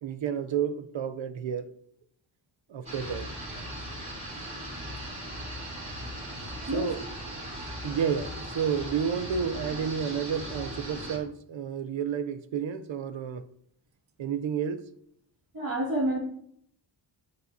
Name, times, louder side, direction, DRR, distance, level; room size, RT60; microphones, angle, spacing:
voice 1, 0.0-1.8 2.7-3.3 6.7-7.0 7.4-7.5 7.8-13.4 14.2-14.9, right 7 dB, 80° right, 0.7 m, -31 dB
sound 1, 2.8-11.2, equal, 15° right, 3.4 m, -38 dB
voice 2, 15.5-16.2, right 1 dB, 50° right, 2.3 m, -28 dB
12.5 x 6.7 x 2.8 m
wide cardioid pair, 165°, 46 cm